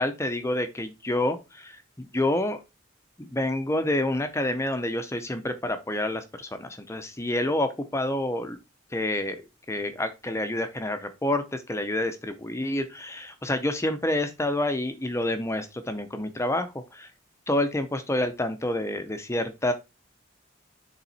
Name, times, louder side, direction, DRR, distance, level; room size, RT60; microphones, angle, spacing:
voice 1, 0.0-2.6 3.2-8.6 8.9-17.1 17.5-19.7, left 1 dB, 15° left, 9 dB, 0.6 m, -28 dB
7.2 x 3.7 x 4.1 m, 0.25 s
head